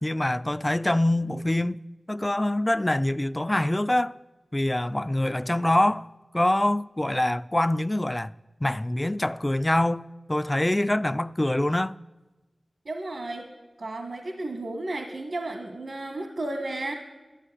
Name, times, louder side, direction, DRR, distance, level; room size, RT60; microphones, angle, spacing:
voice 1, 0.0-1.8 2.1-4.2 4.5-6.1 6.3-8.3 8.6-12.0, left 1 dB, 20° left, 0.3 m, -25 dB
voice 2, 12.8-13.5 13.8-17.0, right 2 dB, 75° right, 1.3 m, -33 dB
11.5 x 7.9 x 9.9 m
wide cardioid pair, 70°, 0 cm